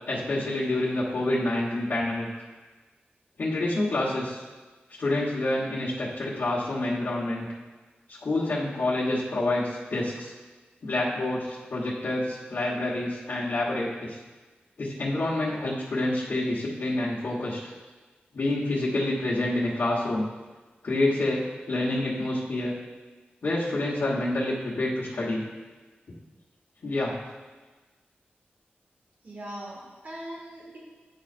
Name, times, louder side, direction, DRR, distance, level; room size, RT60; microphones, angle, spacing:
voice 1, 0.1-2.3 3.4-4.4 5.0-7.5 8.1-10.3 10.8-14.2 14.8-17.6 18.3-20.2 20.8-22.7 23.4-25.4 26.8-27.1, left 2 dB, 65° left, -9 dB, 1.3 m, -27 dB
voice 2, 29.2-30.8, right 1 dB, 50° right, -3 dB, 1.8 m, -40 dB
9.5 x 5.3 x 2.5 m, 1.3 s
wide cardioid pair, 95°, 4 cm